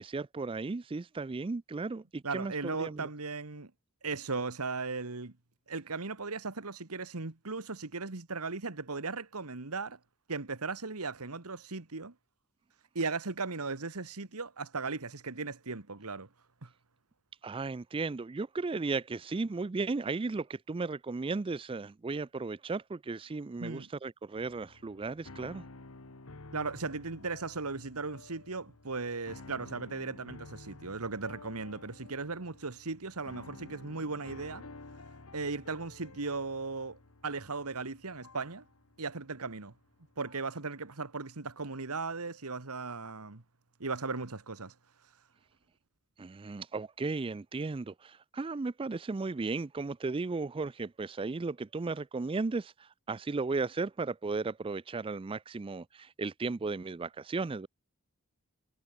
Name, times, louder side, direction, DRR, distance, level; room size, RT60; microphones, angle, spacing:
voice 1, 0.0-3.1 17.4-25.6 46.2-57.7, right 3 dB, 25° right, 0.4 m, -35 dB
voice 2, 2.2-3.7 4.0-5.3 5.7-10.0 10.3-12.1 12.9-16.3 16.6-16.7 23.6-23.9 26.5-34.7 35.3-38.6 39.0-39.7 40.2-43.4 43.8-44.7, right 4 dB, 85° right, 1.7 m, -37 dB
sound 1, 24.4-40.6, left 3 dB, 75° left, 1.5 m, -52 dB
head